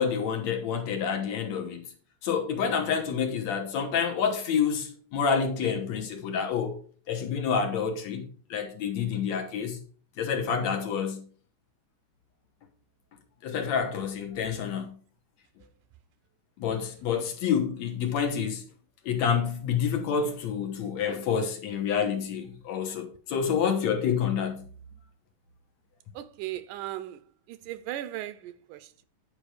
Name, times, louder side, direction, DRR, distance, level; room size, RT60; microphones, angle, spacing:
voice 1, 0.0-1.8 2.2-6.8 7.1-9.8 10.2-11.3 13.4-15.0 16.6-18.6 19.1-24.7, left 7 dB, 65° left, 2.3 m, -28 dB
voice 2, 26.1-27.2 27.5-29.0, right 14 dB, 85° right, 2.2 m, -37 dB
10.0 x 5.0 x 4.9 m
omnidirectional pair, 3.6 m